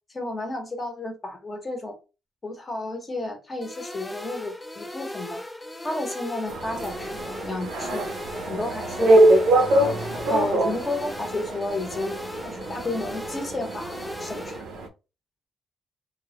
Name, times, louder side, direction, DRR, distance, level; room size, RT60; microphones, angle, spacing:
voice 1, 0.1-2.0 2.4-5.4 5.8-8.1 8.5-9.2 9.5-12.2 12.4-14.6, left 2 dB, 30° left, 0.7 m, -32 dB
sound 1, 3.6-14.6, left 1 dB, 10° left, 0.3 m, -37 dB
sound 2, 6.5-14.9, right 1 dB, 80° right, 0.4 m, -24 dB
2.2 x 2.0 x 2.8 m
cardioid pair, 90°, 0 cm